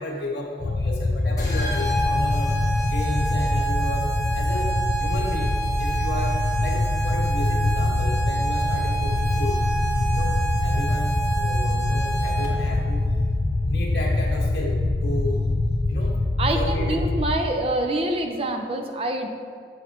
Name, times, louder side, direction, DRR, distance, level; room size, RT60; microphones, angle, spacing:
voice 1, 0.0-9.6 10.1-13.0 13.6-15.4 15.9-16.2 16.5-17.1, left 1 dB, 70° left, -3 dB, 1.5 m, -33 dB
sound 1, 0.6-17.4, left 2 dB, 45° left, 0.4 m, -24 dB
sound 2, 1.4-12.8, right 3 dB, 20° left, 1.4 m, -29 dB
voice 2, 16.4-19.3, right 1 dB, 30° right, 4 dB, 0.5 m, -26 dB
7.8 x 6.9 x 3.0 m, 2.3 s
head